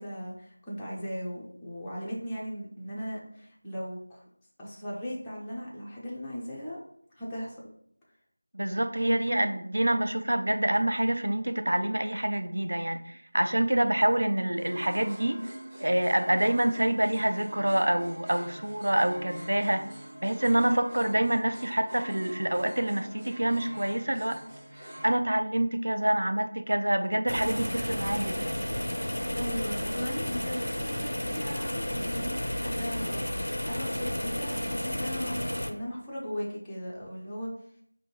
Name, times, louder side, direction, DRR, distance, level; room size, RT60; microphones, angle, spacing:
voice 1, 0.0-4.2 4.6-6.8 7.1-7.7 9.0-9.5 29.3-35.4 35.6-37.5, equal, 5° left, -8 dB, 0.4 m, -37 dB
voice 2, 8.5-15.5 15.8-19.9 20.2-24.4 25.0-28.7, right 1 dB, 60° right, 8 dB, 0.4 m, -27 dB
sound 1, 14.6-25.2, right 1 dB, 25° right, 0.9 m, -44 dB
sound 2, 27.3-35.7, equal, 80° left, 0.5 m, -32 dB
4.3 x 2.7 x 2.9 m, 0.67 s
figure-of-eight pair, 170°, 0 cm